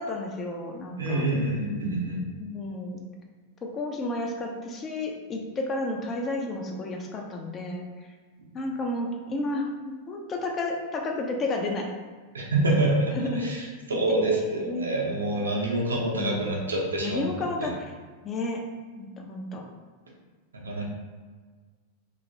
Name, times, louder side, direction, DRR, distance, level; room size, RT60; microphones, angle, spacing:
voice 1, 0.0-1.2 2.4-3.0 3.6-7.9 8.5-9.7 10.1-11.9 12.6-12.8 13.1-13.5 14.1-14.9 16.1-16.6 17.0-17.9 18.2-18.6 19.0-19.6, left 2 dB, 25° left, 1 dB, 0.5 m, -32 dB
voice 2, 1.0-2.2 12.3-17.2 20.5-20.8, right 2 dB, 70° right, -1 dB, 0.7 m, -26 dB
3.1 x 2.9 x 2.6 m, 1.5 s
figure-of-eight pair, 90°, 0 cm